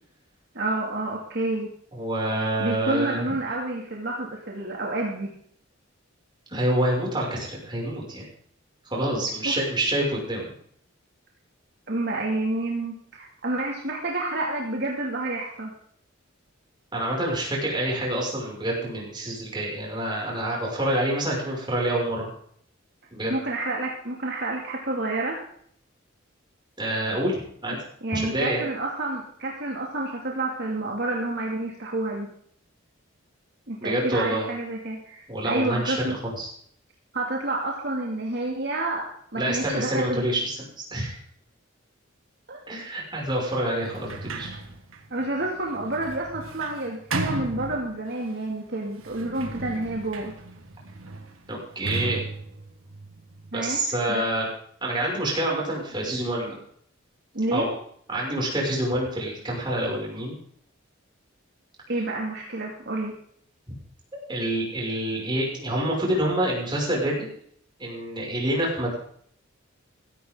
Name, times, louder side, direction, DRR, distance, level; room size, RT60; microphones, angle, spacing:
voice 1, 0.5-1.7 2.6-5.3 9.4-9.6 11.9-12.9 13.4-15.7 23.3-25.4 27.7-32.3 33.7-36.2 37.1-40.3 42.5-42.6 45.1-50.3 53.5-54.3 57.3-57.7 61.9-63.2, right 2 dB, 55° right, -1 dB, 2.6 m, -29 dB
voice 2, 1.9-3.2 6.5-8.3 8.9-10.5 16.9-22.3 23.1-23.3 26.8-27.8 28.1-28.6 33.8-34.5 35.3-36.5 39.3-40.6 40.9-41.2 42.7-44.5 51.5-52.2 53.5-54.5 54.8-56.5 57.5-57.7 58.1-60.4 64.3-67.3 67.8-68.9, right 1 dB, 25° right, -3 dB, 6.5 m, -27 dB
Sliding door, 43.8-48.3 49.0-53.8, right 3 dB, 85° right, 1.8 m, -36 dB
16.0 x 14.0 x 3.9 m, 0.63 s
head